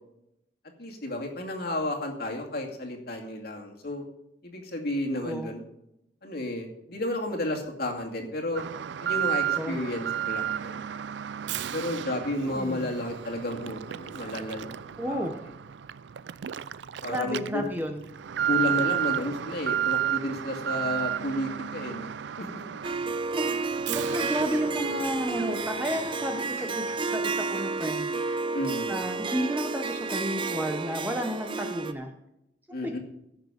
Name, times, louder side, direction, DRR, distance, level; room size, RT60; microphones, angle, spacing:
voice 1, 0.8-4.0 4.4-5.6 6.2-8.6 9.0-10.9 11.7-14.8 15.0-15.3 17.0-17.6 18.5-22.8 28.5-28.9 32.7-33.0, left 1 dB, 60° left, 1 dB, 2.3 m, -32 dB
voice 2, 5.2-5.5 9.5-9.8 12.4-12.9 15.0-15.3 17.1-18.0 23.4-28.1 28.9-32.1 32.8-33.0, equal, 10° right, 3 dB, 0.9 m, -32 dB
Alarm, 8.6-27.2 27.5-27.7 28.3-28.4, right 10 dB, 80° right, 0.4 m, -33 dB
Harp, 22.8-31.9, right 3 dB, 30° right, 0.6 m, -31 dB
15.5 x 6.6 x 5.0 m, 0.83 s
head